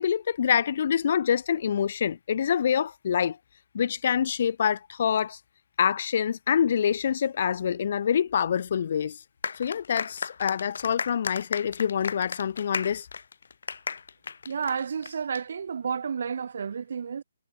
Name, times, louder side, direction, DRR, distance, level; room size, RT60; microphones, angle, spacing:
voice 1, 0.0-3.4 3.7-5.4 5.8-9.2 9.6-13.1, left 8 dB, 35° left, 1.2 m, -26 dB
sound 1, 9.4-15.4, left 5 dB, 55° left, 3.4 m, -35 dB
voice 2, 14.5-17.2, right 6 dB, 45° right, 3.6 m, -31 dB
hypercardioid pair, 175°, 0 cm